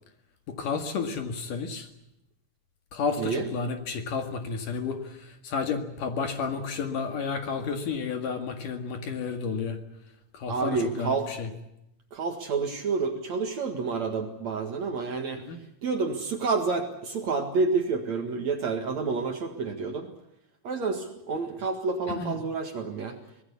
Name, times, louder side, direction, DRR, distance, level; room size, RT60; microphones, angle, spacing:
voice 1, 0.5-1.9 2.9-9.8 10.3-11.5 15.5-15.6 22.1-22.4, left 5 dB, 60° left, 6 dB, 3.2 m, -31 dB
voice 2, 10.5-11.3 12.1-15.4 15.8-20.1 20.6-23.2, right 4 dB, 50° right, 5 dB, 2.6 m, -29 dB
25.5 x 18.5 x 8.4 m, 0.85 s
omnidirectional pair, 4.7 m